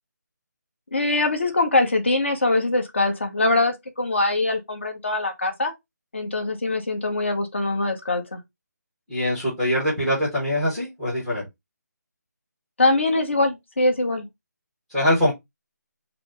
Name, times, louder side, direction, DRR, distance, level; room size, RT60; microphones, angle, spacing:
voice 1, 0.9-5.7 6.1-8.4 12.8-14.3, left 2 dB, 40° left, 1.0 m, -23 dB
voice 2, 9.1-11.5 14.9-15.3, left 1 dB, ahead, 0.7 m, -23 dB
4.9 x 2.1 x 4.8 m
figure-of-eight pair, 180°, 10 cm